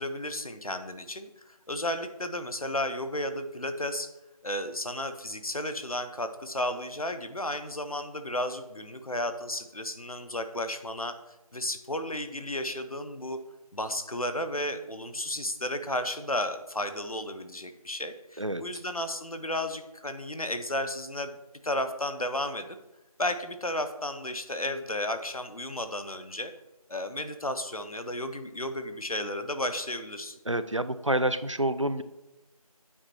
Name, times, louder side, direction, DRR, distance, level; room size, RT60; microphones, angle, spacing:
voice 1, 0.0-4.1 4.4-11.1 11.5-13.4 13.7-21.3 21.6-22.7 23.2-26.5 26.9-30.4, left 1 dB, 65° left, 9 dB, 0.9 m, -33 dB
voice 2, 30.5-32.0, right 1 dB, 55° right, 13 dB, 0.4 m, -28 dB
8.6 x 4.6 x 4.3 m, 0.97 s
figure-of-eight pair, 180°, 19 cm